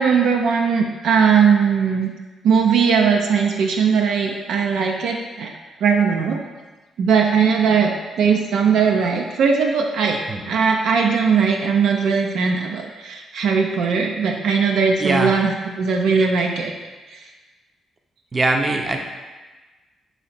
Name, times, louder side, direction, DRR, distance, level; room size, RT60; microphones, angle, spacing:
voice 1, 0.0-2.1 2.4-5.5 5.8-6.4 7.0-7.9 8.2-10.2 10.5-16.7, right 6 dB, 75° right, 2 dB, 0.4 m, -19 dB
voice 2, 15.0-15.3 18.3-19.0, right 2 dB, 30° right, 3 dB, 0.6 m, -21 dB
4.0 x 2.8 x 4.2 m, 1.2 s
cardioid pair, 70°, 0 cm